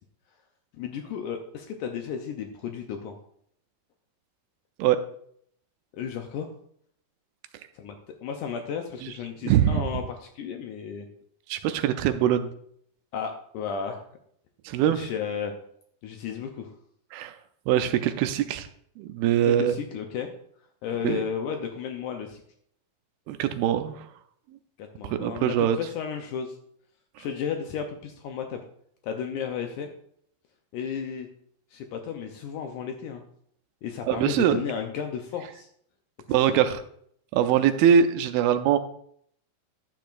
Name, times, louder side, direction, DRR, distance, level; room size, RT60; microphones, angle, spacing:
voice 1, 0.8-3.2 5.9-6.5 7.8-8.0 8.2-11.1 13.1-14.0 14.9-15.5 16.0-16.7 19.4-20.3 20.8-22.4 24.8-26.6 27.2-28.6 29.0-29.9 30.7-31.3 31.7-33.2 33.8-35.7 36.3-36.7, left 7 dB, 90° left, 4 dB, 1.7 m, -33 dB
voice 2, 9.4-9.8 11.5-12.5 14.7-15.1 17.1-17.4 17.7-18.7 19.0-19.7 21.0-21.2 23.3-24.1 25.0-25.8 34.1-34.6 36.3-36.8 37.3-38.8, right 9 dB, 80° right, 9 dB, 2.3 m, -22 dB
12.0 x 9.2 x 2.5 m, 0.67 s
omnidirectional pair, 4.5 m